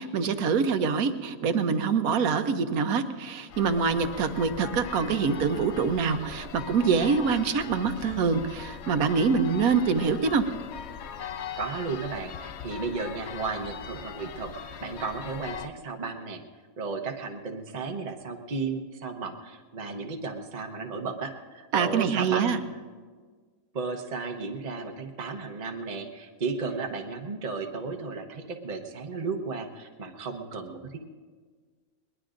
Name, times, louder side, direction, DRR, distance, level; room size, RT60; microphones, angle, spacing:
voice 1, 0.0-10.5 21.7-22.6, right 5 dB, 85° right, 9 dB, 1.3 m, -25 dB
sound 1, 3.5-15.7, left 7 dB, 60° left, 0.8 m, -40 dB
voice 2, 11.6-16.4 16.8-22.6 23.7-31.0, right 4 dB, 35° right, 2 dB, 1.0 m, -34 dB
22.5 x 20.0 x 2.6 m, 1.5 s
omnidirectional pair, 1.5 m